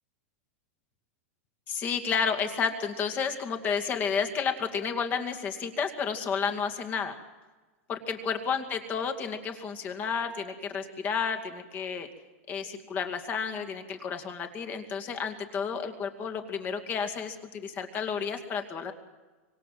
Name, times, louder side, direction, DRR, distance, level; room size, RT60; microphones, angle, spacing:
voice 1, 1.7-7.2 7.9-12.1 12.5-18.9, left 6 dB, 25° left, 6 dB, 2.3 m, -31 dB
25.5 x 24.5 x 7.8 m, 1.3 s
supercardioid pair, 160°, 7 cm